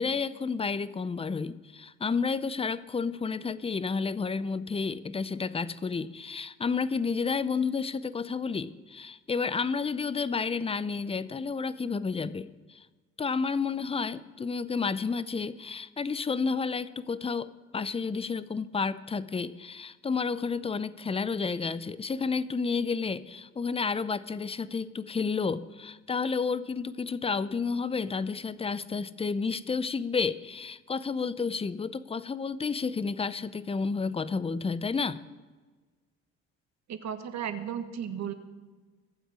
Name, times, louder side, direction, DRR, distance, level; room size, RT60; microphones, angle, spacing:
voice 1, 0.0-12.9 13.2-35.2, left 5 dB, 20° left, 16 dB, 0.6 m, -31 dB
voice 2, 36.9-38.3, right 8 dB, 60° right, 8 dB, 1.5 m, -34 dB
23.0 x 8.0 x 4.9 m, 1.3 s
supercardioid pair, 75°, 31 cm